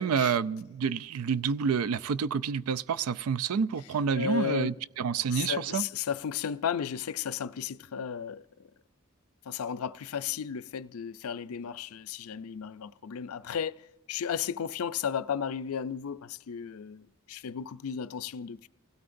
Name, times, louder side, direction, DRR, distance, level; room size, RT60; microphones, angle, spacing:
voice 1, 0.0-5.8, right 6 dB, 85° right, 0.4 m, -28 dB
voice 2, 4.2-4.8 5.3-8.5 9.5-18.7, left 8 dB, 85° left, 0.4 m, -34 dB
30.0 x 16.5 x 2.6 m
head